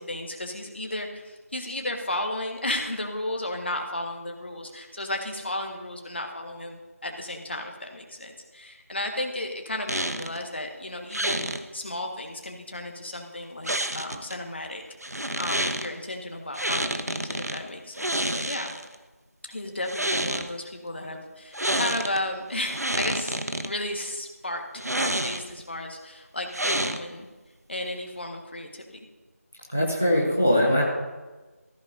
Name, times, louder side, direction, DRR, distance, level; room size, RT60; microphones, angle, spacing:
voice 1, 0.0-14.8 15.1-18.7 19.5-23.4 23.6-27.3 27.7-29.0, left 1 dB, 45° left, 3 dB, 1.6 m, -34 dB
sound 1, 9.9-10.4 11.1-11.6 13.6-14.3 15.0-15.9 16.5-17.6 17.9-18.9 19.8-20.5 21.5-22.2 22.5-23.7 24.8-25.6 26.5-27.2, right 1 dB, 85° right, 1.1 m, -28 dB
voice 2, 29.7-30.8, equal, 5° right, -3 dB, 0.4 m, -21 dB
14.5 x 12.5 x 2.7 m, 1.2 s
figure-of-eight pair, 170°, 8 cm